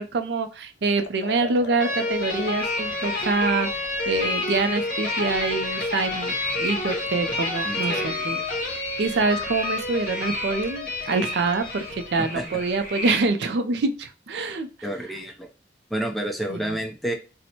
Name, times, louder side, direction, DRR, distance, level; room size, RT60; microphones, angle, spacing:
voice 1, 0.0-8.4 8.7-14.7 16.5-16.8, right 3 dB, 75° right, 8 dB, 0.4 m, -26 dB
Liquid, 0.9-12.1, left 3 dB, 75° left, 0.4 m, -45 dB
sound 1, 1.8-12.5, left 2 dB, 50° left, 0.8 m, -29 dB
sound 2, 2.1-13.3, equal, 45° right, 0.9 m, -36 dB
voice 2, 7.7-8.4 12.3-12.6 14.8-15.5 15.9-17.1, right 1 dB, ahead, 2 dB, 0.4 m, -30 dB
4.3 x 2.1 x 2.8 m, 0.32 s
head